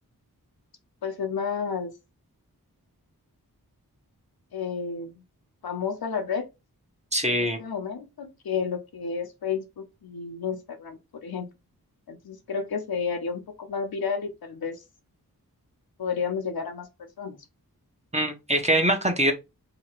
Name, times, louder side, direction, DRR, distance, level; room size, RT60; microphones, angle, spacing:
voice 1, 1.0-1.9 4.5-5.2 5.6-6.5 7.3-11.5 12.1-14.8 16.0-17.4, left 6 dB, 75° left, 0.8 m, -31 dB
voice 2, 7.1-7.6 18.1-19.3, right 1 dB, 20° right, 1.0 m, -23 dB
2.9 x 2.7 x 4.4 m
cardioid pair, 50°, 37 cm